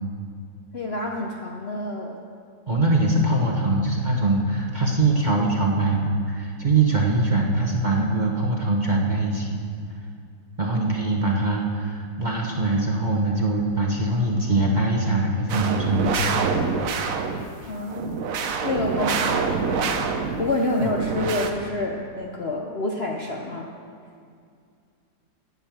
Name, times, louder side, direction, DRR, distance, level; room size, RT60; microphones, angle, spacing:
voice 1, 0.7-2.2 17.7-18.2 18.6-20.1 20.4-23.7, left 2 dB, 50° left, 0 dB, 0.8 m, -28 dB
voice 2, 2.7-9.6 10.6-16.5 20.8-21.0, right 2 dB, 30° right, -1 dB, 1.0 m, -22 dB
sound 1, 15.5-17.5 17.9-20.5 20.8-21.5, right 5 dB, 60° right, 1.0 m, -26 dB
9.5 x 8.8 x 7.5 m, 2.3 s
omnidirectional pair, 1.9 m